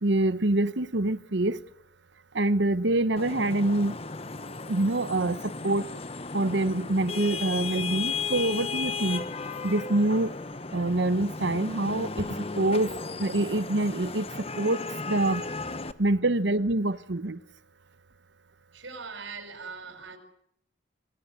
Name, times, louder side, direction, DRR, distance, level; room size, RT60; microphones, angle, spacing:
voice 1, 0.0-1.6 2.3-4.0 4.7-6.0 6.3-9.3 9.6-10.3 10.7-12.9 13.2-15.4 16.0-17.4, right 2 dB, 65° right, 1.0 m, -26 dB
Vehicle horn car horn honking / Traffic noise roadway noise, 3.2-15.9, left 4 dB, 30° left, 1.0 m, -35 dB
voice 2, 18.7-20.2, right 4 dB, 85° right, 5.5 m, -41 dB
26.5 x 19.0 x 9.6 m
head